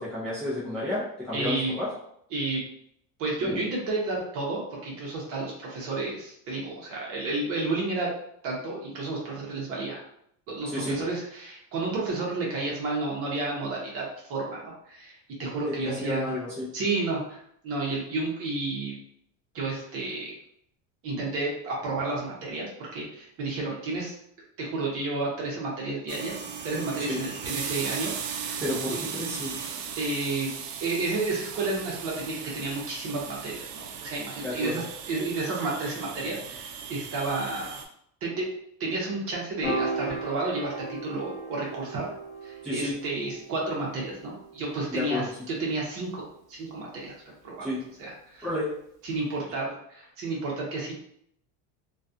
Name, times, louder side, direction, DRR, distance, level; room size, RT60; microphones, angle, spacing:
voice 1, 0.0-1.9 3.4-3.6 10.7-11.0 15.8-16.7 27.1-27.2 28.6-29.5 34.4-34.8 42.6-42.9 44.9-45.3 47.6-47.8 48.4-48.7, left 1 dB, 5° left, -10 dB, 0.5 m, -31 dB
voice 2, 1.3-1.8 2.3-2.6 3.2-8.1 8.4-10.1 10.5-16.3 16.7-19.0 19.5-20.4 21.0-24.1 24.6-28.6 28.9-29.0 30.0-30.5 30.8-37.8 38.2-38.5 38.8-42.1 42.4-47.7 48.0-48.5 49.0-50.9, right 3 dB, 40° right, -3 dB, 0.8 m, -31 dB
sound 1, 26.1-37.8, right 7 dB, 90° right, 0.5 m, -37 dB
Piano, 39.6-46.0, right 2 dB, 50° left, 1.1 m, -37 dB
2.3 x 2.3 x 2.6 m, 0.70 s
cardioid pair, 155°, 36 cm